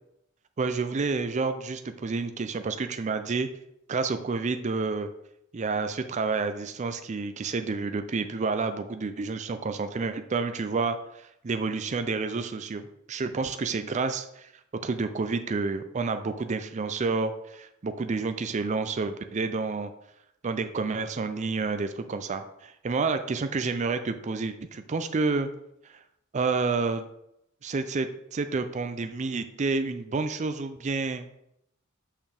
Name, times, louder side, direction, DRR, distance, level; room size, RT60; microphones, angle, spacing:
voice 1, 0.6-3.5 3.9-5.1 5.5-14.5 14.8-19.9 20.4-25.5 25.8-26.0 26.3-27.0 27.6-31.3, right 4 dB, 35° right, 9 dB, 0.4 m, -29 dB
6.5 x 5.8 x 3.4 m, 0.79 s
head